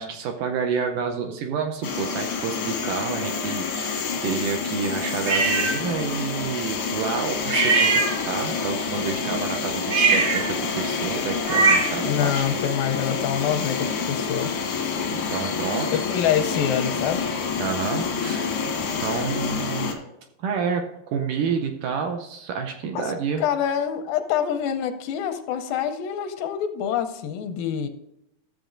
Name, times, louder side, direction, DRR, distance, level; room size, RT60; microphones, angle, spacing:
voice 1, 0.0-12.6 15.1-15.9 17.6-19.9 20.4-23.4, right 6 dB, 75° right, 4 dB, 2.0 m, -29 dB
sound 1, 1.8-19.9, left 5 dB, 65° left, 1.4 m, -28 dB
sound 2, 5.3-5.8 7.5-8.6 9.8-12.1, right 4 dB, 50° right, 1.8 m, -22 dB
voice 2, 12.0-14.5 15.9-17.3 22.9-23.1 23.4-27.9, left 9 dB, 85° left, 7 dB, 2.3 m, -26 dB
13.0 x 7.5 x 2.6 m, 0.84 s
omnidirectional pair, 4.2 m